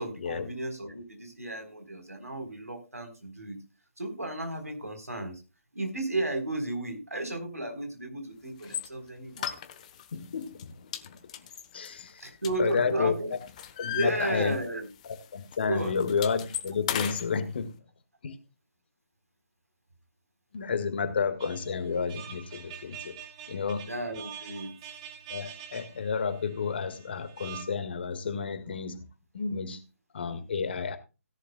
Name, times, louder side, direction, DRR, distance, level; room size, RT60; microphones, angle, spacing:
voice 1, 0.0-3.6 4.0-5.4 5.7-9.5 12.2-13.3 13.8-14.9 15.7-16.0 23.9-24.7, right 1 dB, 80° right, 4.0 m, -33 dB
sound 1, 8.6-8.9 9.4-10.1 10.4-10.6 10.9-13.0 13.3-14.8 15.0-15.2 15.5-17.3, left 10 dB, 30° left, 1.0 m, -36 dB
voice 2, 10.1-10.7 11.7-12.3 12.6-13.1 13.8-14.6 15.0-17.7 18.2-18.3 20.5-23.1 23.5-23.9 25.3-29.0 29.3-29.8 30.1-31.0, left 5 dB, 45° left, 1.7 m, -31 dB
sound 2, 21.4-27.6, right 9 dB, 25° right, 1.3 m, -46 dB
17.0 x 11.0 x 2.3 m
figure-of-eight pair, 140°, 8 cm